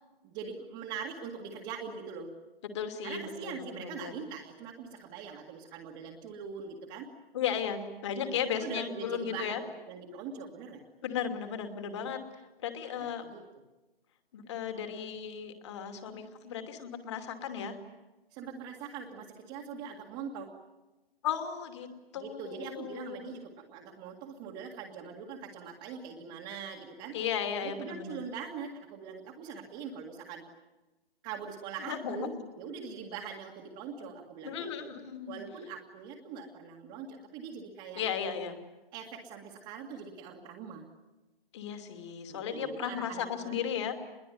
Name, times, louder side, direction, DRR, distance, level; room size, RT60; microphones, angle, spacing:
voice 1, 0.2-2.3 3.0-7.1 8.4-10.8 13.0-13.4 18.3-20.5 22.1-27.2 27.6-30.4 31.2-35.0 35.3-38.0 38.9-40.9 42.3-43.7, right 6 dB, 15° right, -2 dB, 2.0 m, -42 dB
voice 2, 2.7-4.1 7.3-9.6 11.0-12.2 12.6-13.2 14.3-17.8 21.2-21.9 22.1-23.3 27.1-28.2 31.8-32.2 34.4-35.4 37.9-38.5 41.5-44.0, left 8 dB, 30° left, 7 dB, 2.8 m, -35 dB
27.0 x 22.0 x 9.5 m, 1.1 s
hypercardioid pair, 160°, 30 cm